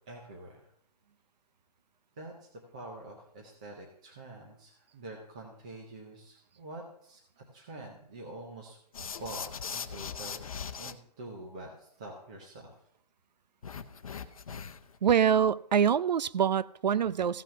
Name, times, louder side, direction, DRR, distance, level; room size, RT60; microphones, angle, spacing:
voice 1, 0.1-0.7 2.2-8.8 9.2-10.5 10.8-12.7, right 2 dB, 10° right, -1 dB, 0.5 m, -46 dB
sound 1, 8.9-10.9 13.6-15.0, left 6 dB, 55° left, 0.8 m, -40 dB
voice 2, 15.0-17.4, right 8 dB, 85° right, 19 dB, 0.6 m, -25 dB
15.0 x 5.9 x 6.9 m, 0.70 s
hypercardioid pair, 180°, 21 cm